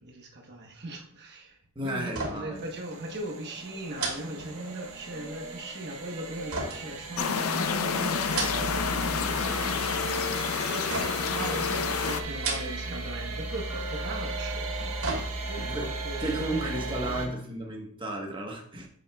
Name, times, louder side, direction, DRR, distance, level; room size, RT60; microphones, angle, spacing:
voice 1, 0.0-15.1 15.5-17.3, right 1 dB, 50° right, 0 dB, 1.1 m, -39 dB
voice 2, 1.7-2.6 10.9-11.0 15.6-15.9 16.2-18.9, right 1 dB, 25° right, 0 dB, 1.2 m, -33 dB
sound 1, 2.1-2.6 2.9-3.1 3.9-5.0 6.5-7.6 8.1-8.9 9.2-9.8 10.9-11.4 12.3-13.0 13.3-13.4 14.5-15.7 16.1-16.2, right 3 dB, 90° right, 2.5 m, -35 dB
sound 2, 2.6-17.3, right 2 dB, 75° right, 1.3 m, -36 dB
sound 3, 7.2-12.2, left 6 dB, 70° left, 0.6 m, -29 dB
9.0 x 7.5 x 2.3 m, 0.64 s
head